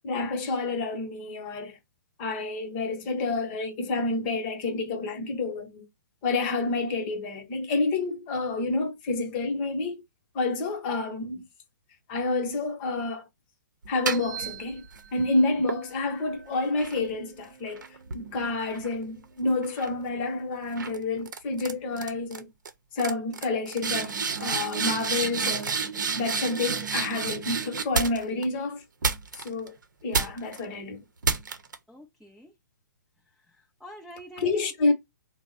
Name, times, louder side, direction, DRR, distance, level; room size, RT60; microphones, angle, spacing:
voice 1, 0.0-1.8 2.2-5.9 6.2-10.0 10.3-11.4 12.1-13.3 13.9-14.8 15.1-17.8 18.1-22.5 22.9-25.7 26.2-28.8 29.3-29.7 30.0-31.0 34.4-34.9, left 3 dB, 35° left, 0.8 m, -29 dB
sound 1, 13.8-15.1 15.7-19.2 19.6-20.0 20.8-21.0 21.2-21.7 22.0-22.4 22.6-22.7 23.0-28.4 29.0-29.7 30.1-30.6 31.2-31.7, right 5 dB, 85° right, 0.7 m, -31 dB
voice 2, 31.9-32.5 33.5-34.9, equal, ahead, 0.4 m, -46 dB
3.3 x 2.0 x 3.9 m
hypercardioid pair, 145°, 10 cm